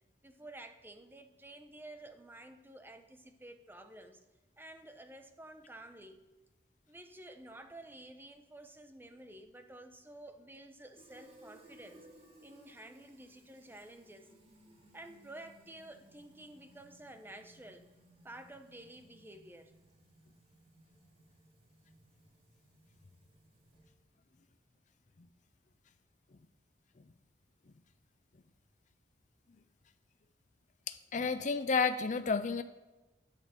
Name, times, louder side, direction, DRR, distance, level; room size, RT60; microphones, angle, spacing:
voice 1, 0.2-4.2 4.6-6.2 6.9-12.1 12.4-14.3 14.9-17.9 18.2-19.7, right 1 dB, 15° right, 7 dB, 0.9 m, -51 dB
Fill (with liquid), 10.9-24.0, right 1 dB, 35° right, 2.5 m, -62 dB
voice 2, 30.9-32.6, left 5 dB, 45° left, 10 dB, 0.6 m, -31 dB
9.5 x 8.5 x 7.3 m, 1.1 s
head